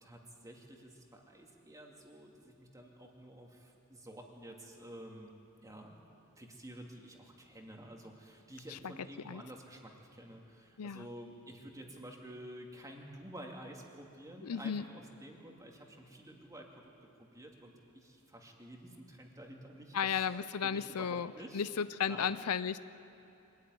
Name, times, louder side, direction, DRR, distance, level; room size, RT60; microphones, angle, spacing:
voice 1, 0.0-5.3 5.6-5.9 6.4-16.9 17.2-21.7 22.1-22.4, right 1 dB, 15° right, 0 dB, 2.4 m, -50 dB
voice 2, 14.4-14.8 19.9-22.8, left 7 dB, 85° left, 14 dB, 0.6 m, -34 dB
23.5 x 14.0 x 9.7 m, 3.0 s
head